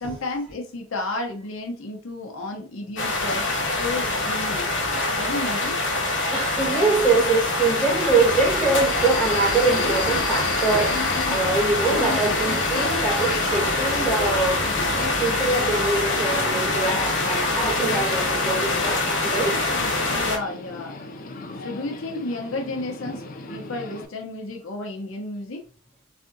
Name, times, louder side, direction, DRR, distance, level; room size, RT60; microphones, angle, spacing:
voice 1, 0.0-3.4 3.8-5.8 20.1-21.0 21.5-23.2 23.5-25.6, left 2 dB, 75° left, 0.8 m, -32 dB
sound 1, 3.0-20.4, left 2 dB, 60° left, 1.1 m, -24 dB
voice 2, 6.3-14.7 15.2-19.6 23.4-23.5, right 3 dB, 5° left, 1.8 m, -24 dB
sound 2, 8.2-15.2, equal, 60° right, 1.6 m, -35 dB
Subway metro underground, 8.3-24.0, left 3 dB, 40° left, 0.4 m, -34 dB
3.6 x 3.3 x 2.6 m
head